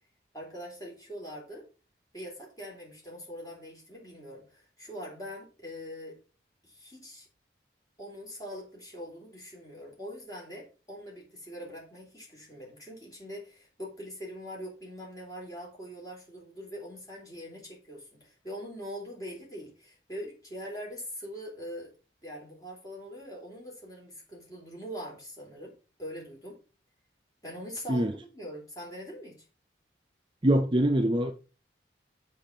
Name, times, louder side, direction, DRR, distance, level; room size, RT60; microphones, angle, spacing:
voice 1, 0.3-1.7 2.1-6.2 6.6-7.3 8.0-21.9 22.2-25.7 26.0-26.6 27.4-29.4, equal, 20° left, 3.7 m, -42 dB
voice 2, 30.4-31.3, right 1 dB, 25° right, 0.5 m, -23 dB
7.1 x 5.1 x 6.0 m
head